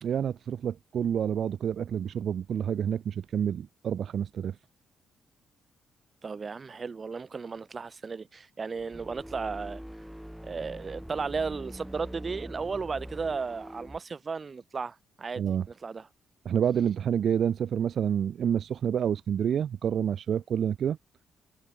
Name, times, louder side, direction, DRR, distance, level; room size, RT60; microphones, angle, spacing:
voice 1, 0.0-4.6 15.4-15.7 16.4-21.0, right 8 dB, 60° right, 1.3 m, -28 dB
voice 2, 6.2-9.8 10.4-16.1, right 5 dB, 35° right, 3.7 m, -35 dB
sound 1, 8.8-14.0, equal, ahead, 4.3 m, -43 dB
cardioid pair, 90°, 0 cm